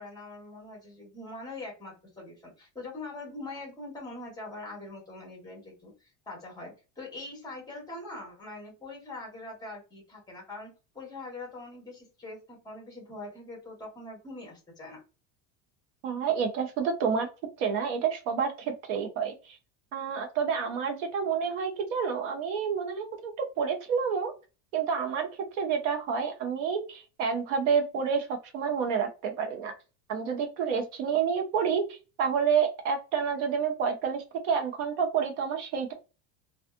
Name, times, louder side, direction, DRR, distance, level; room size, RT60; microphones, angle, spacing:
voice 1, 0.0-15.0, left 2 dB, 10° left, -1 dB, 1.2 m, -43 dB
voice 2, 16.0-17.3 17.6-19.6 19.9-24.3 24.7-25.3 25.5-29.7 30.1-35.9, right 6 dB, 75° right, 4 dB, 0.9 m, -29 dB
2.5 x 2.4 x 2.5 m, 0.31 s
cardioid pair, 165°, 37 cm